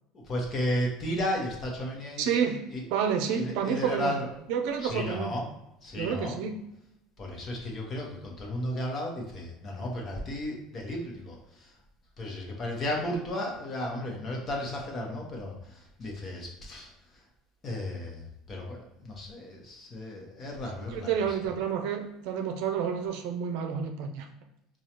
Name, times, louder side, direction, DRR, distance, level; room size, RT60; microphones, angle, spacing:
voice 1, 0.1-2.3 2.7-2.8 3.3-4.3 4.8-5.5 5.8-6.4 7.2-11.7 12.2-17.2 17.6-21.4, left 1 dB, 35° left, 0 dB, 1.0 m, -34 dB
voice 2, 2.2-2.6 2.9-4.1 4.5-5.3 6.0-6.5 20.9-24.3, right 7 dB, 70° right, 5 dB, 0.5 m, -29 dB
4.7 x 2.3 x 2.9 m, 0.87 s
supercardioid pair, 120°, 0 cm